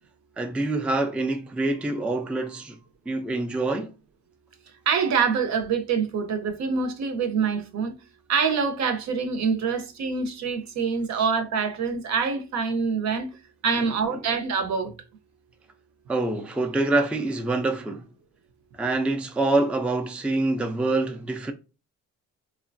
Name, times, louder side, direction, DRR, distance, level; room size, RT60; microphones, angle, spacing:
voice 1, 0.4-2.8 3.1-3.9 16.1-18.1 18.8-21.5, right 2 dB, 5° right, 0.3 m, -25 dB
voice 2, 4.9-7.9 8.3-13.3 13.6-14.9, right 5 dB, 65° right, 0.6 m, -25 dB
3.0 x 2.1 x 2.6 m
cardioid pair, 90°, 30 cm